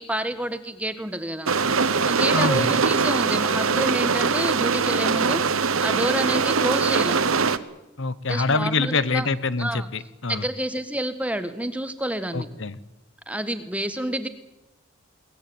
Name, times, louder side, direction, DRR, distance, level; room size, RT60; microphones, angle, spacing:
voice 1, 0.0-1.5 2.0-7.2 8.3-9.3 9.6-9.9 10.3-12.5 13.3-14.3, right 1 dB, 5° right, 10 dB, 1.5 m, -29 dB
sound 1, 1.5-7.6, right 5 dB, 75° right, 1.2 m, -22 dB
voice 2, 2.3-2.7 8.0-10.5 12.3-12.8, left 3 dB, 60° left, 16 dB, 1.2 m, -25 dB
22.0 x 19.5 x 8.8 m, 0.96 s
head